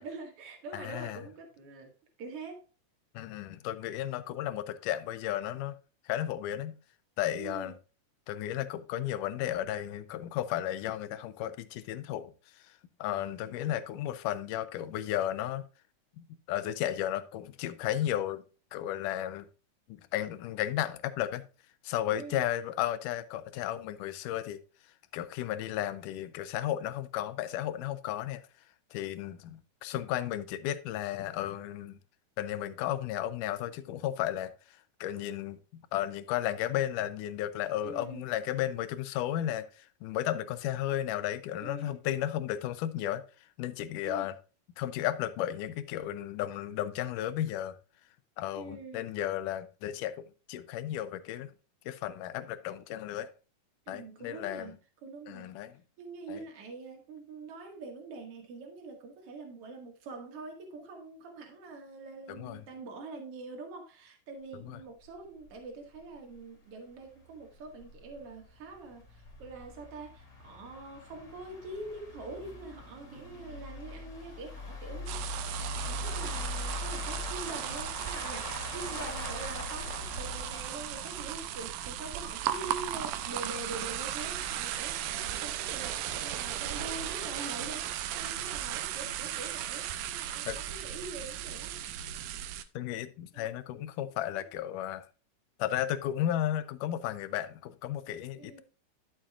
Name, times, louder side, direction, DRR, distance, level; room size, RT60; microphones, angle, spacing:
voice 1, 0.0-1.9 2.2-2.6 7.4-7.7 22.2-22.5 37.8-38.2 41.6-42.0 44.0-44.3 48.5-49.0 53.9-54.7 55.0-55.5 56.0-75.2 75.5-91.8 93.3-93.5 94.3-94.5 98.4-98.6, right 3 dB, 50° right, 2.7 m, -44 dB
voice 2, 0.7-1.2 3.1-5.8 6.1-6.8 7.2-7.8 8.3-15.6 16.2-18.4 18.7-19.5 19.9-21.4 21.8-24.6 25.1-28.4 28.9-32.0 32.4-43.2 43.6-44.4 44.8-47.8 48.4-51.5 51.9-53.3 53.9-54.7 55.3-55.8 56.3-56.4 62.3-62.6 64.7-64.8 90.5-90.6 92.7-95.1 95.6-98.6, left 12 dB, 85° left, 2.3 m, -34 dB
sound 1, 65.0-65.1 65.4-65.5 65.9-66.0 66.4-66.5 67.1-81.5, left 2 dB, 35° left, 3.1 m, -42 dB
sound 2, 75.1-92.6, right 11 dB, 85° right, 2.2 m, -36 dB
11.5 x 7.1 x 2.4 m
omnidirectional pair, 3.6 m